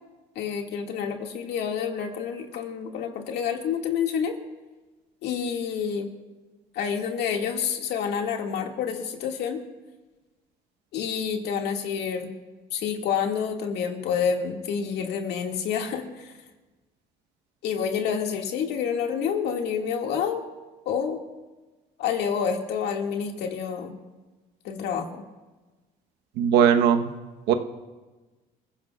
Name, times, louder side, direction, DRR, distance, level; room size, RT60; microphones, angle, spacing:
voice 1, 0.4-4.4 5.2-6.1 6.7-9.6 10.9-12.3 12.7-16.3 17.6-20.4 20.9-21.2 22.0-23.9 24.6-25.2, left 7 dB, 80° left, 2 dB, 2.1 m, -28 dB
voice 2, 26.4-27.1 27.5-27.6, right 8 dB, 90° right, 6 dB, 1.1 m, -19 dB
29.5 x 16.0 x 2.4 m, 1.2 s
cardioid pair, 110°, 17 cm